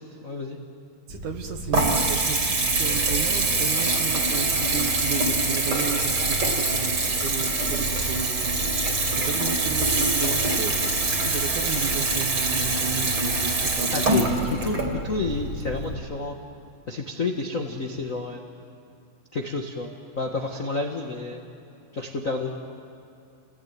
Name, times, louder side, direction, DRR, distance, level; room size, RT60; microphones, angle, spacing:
voice 1, 0.2-0.6 8.8-9.0 13.9-16.3 16.9-18.4 19.3-19.9 20.1-21.4 21.9-22.5, left 3 dB, 80° left, 2 dB, 0.7 m, -30 dB
Water tap faucet / Bathtub (filling or washing) / Trickle dribble, 1.1-15.9, right 2 dB, 40° right, 3.6 m, -24 dB
voice 2, 1.1-10.9 11.2-14.9, right 7 dB, 65° right, 5 dB, 2.5 m, -34 dB
30.0 x 19.5 x 9.4 m, 2.6 s
omnidirectional pair, 4.0 m